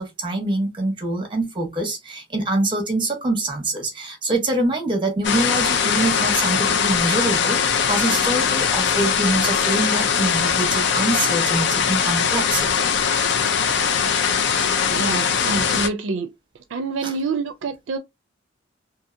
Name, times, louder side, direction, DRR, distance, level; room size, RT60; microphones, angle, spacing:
voice 1, 0.0-12.9 17.0-17.1, right 2 dB, 25° right, 1.0 m, -25 dB
sound 1, 5.2-15.9, left 7 dB, 65° left, 0.5 m, -21 dB
voice 2, 14.9-16.3 16.7-18.0, right 4 dB, 75° right, 0.4 m, -26 dB
2.7 x 2.7 x 2.5 m
head